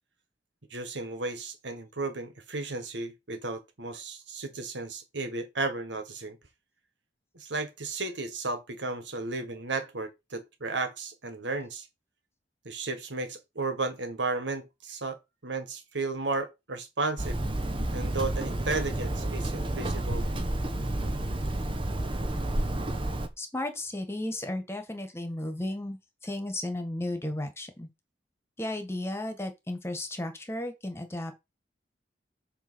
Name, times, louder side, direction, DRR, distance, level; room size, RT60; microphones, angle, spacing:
voice 1, 0.7-6.4 7.3-11.9 12.7-17.4 17.9-20.3, right 3 dB, 85° right, 1.8 m, -34 dB
Hammer, 17.2-23.3, right 1 dB, 30° right, 1.1 m, -30 dB
voice 2, 23.4-26.0 26.2-27.9 28.6-31.4, left 1 dB, 15° left, 1.8 m, -34 dB
8.3 x 3.4 x 6.3 m
head